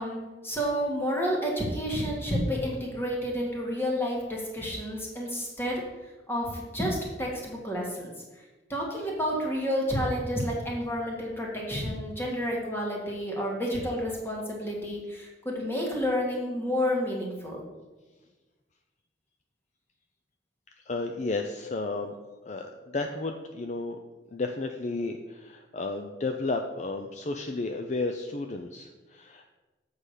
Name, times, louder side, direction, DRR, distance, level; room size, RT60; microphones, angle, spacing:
voice 1, 0.0-5.8 6.3-8.4 8.7-17.6, equal, 15° left, -2 dB, 1.8 m, -30 dB
voice 2, 20.8-22.1 22.5-24.0 24.3-29.5, left 3 dB, 40° left, 5 dB, 0.4 m, -33 dB
7.8 x 4.8 x 6.6 m, 1.2 s
head